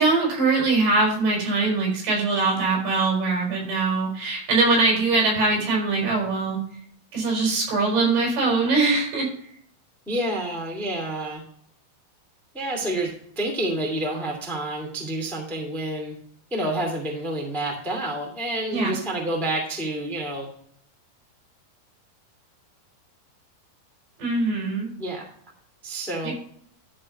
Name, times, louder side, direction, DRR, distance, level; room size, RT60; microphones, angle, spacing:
voice 1, 0.0-6.6 7.1-9.3 18.7-19.0 24.2-24.9 26.2-26.3, right 3 dB, 75° right, -1 dB, 6.4 m, -22 dB
voice 2, 10.0-11.4 12.5-16.2 16.5-20.5 25.0-25.3 25.8-26.3, right 1 dB, ahead, 0 dB, 1.4 m, -28 dB
13.0 x 4.4 x 5.4 m, 0.63 s
omnidirectional pair, 4.6 m